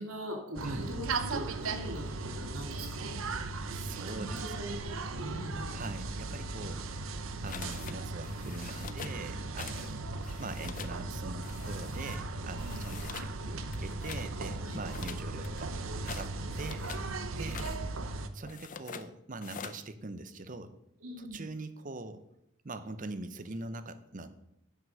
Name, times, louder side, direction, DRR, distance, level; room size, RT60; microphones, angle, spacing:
voice 1, 0.0-3.4 4.0-5.7 9.8-9.9 12.6-12.8 14.6-14.8 21.0-21.4, equal, 90° right, 1 dB, 2.6 m, -42 dB
sound 1, 0.6-18.3, right 3 dB, 70° right, 0.7 m, -37 dB
voice 2, 3.7-7.1 7.4-10.0 10.4-15.8 16.0-16.9 17.4-17.6 18.3-20.7 21.2-22.3 22.6-24.3, right 3 dB, 40° right, 11 dB, 0.7 m, -43 dB
sound 2, 7.5-8.0 8.2-9.2 9.6-9.9 10.2-11.0 11.4-12.2 12.6-13.3 13.7-14.3 14.9-17.1 17.4-17.8 18.4-19.1 19.4-19.8, left 7 dB, 40° left, 0.5 m, -45 dB
9.4 x 5.8 x 6.3 m, 0.81 s
head